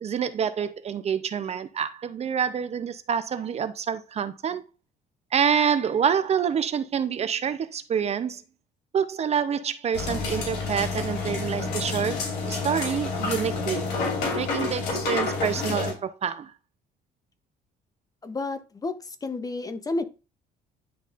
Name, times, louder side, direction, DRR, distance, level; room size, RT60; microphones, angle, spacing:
voice 1, 0.0-4.6 5.3-8.4 8.9-13.8 14.4-16.5, right 7 dB, 40° right, 0.5 m, -27 dB
sound 1, 9.9-15.9, left 3 dB, 75° left, 2.8 m, -29 dB
voice 2, 18.2-20.0, left 3 dB, 20° left, 0.6 m, -31 dB
10.0 x 4.1 x 2.4 m
cardioid pair, 110°, 17 cm